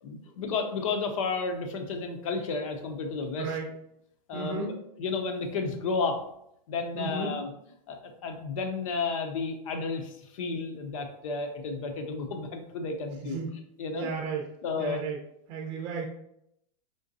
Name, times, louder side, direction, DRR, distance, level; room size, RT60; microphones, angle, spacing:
voice 1, 0.0-3.5 4.3-4.6 5.0-6.2 6.7-7.5 7.9-13.4 13.8-14.1 14.6-15.0, left 4 dB, 55° left, 5 dB, 0.8 m, -32 dB
voice 2, 3.4-3.7 4.3-4.7 6.9-7.3 13.2-13.5 13.9-14.5 14.8-15.2 15.5-16.0, right 4 dB, 25° right, 0 dB, 0.7 m, -33 dB
5.1 x 3.6 x 2.7 m, 0.77 s
supercardioid pair, 175°, 21 cm